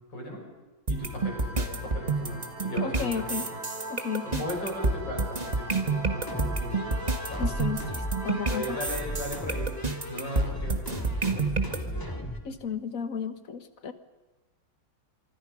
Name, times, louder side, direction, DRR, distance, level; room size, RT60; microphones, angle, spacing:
voice 1, 0.1-0.4 0.9-3.2 4.2-7.0 7.3-7.4 8.5-12.1, left 1 dB, 75° left, 0 dB, 7.0 m, -37 dB
sound 1, 0.9-11.8, right 3 dB, 20° right, 1.6 m, -29 dB
sound 2, 0.9-11.3, right 2 dB, 65° right, 3.6 m, -42 dB
voice 2, 2.8-3.5 3.9-4.4 7.4-8.8 12.4-13.9, left 6 dB, 50° left, 11 dB, 1.5 m, -33 dB
sound 3, 6.3-12.5, equal, 10° left, 2.2 m, -36 dB
25.0 x 25.0 x 5.3 m, 1.2 s
omnidirectional pair, 2.0 m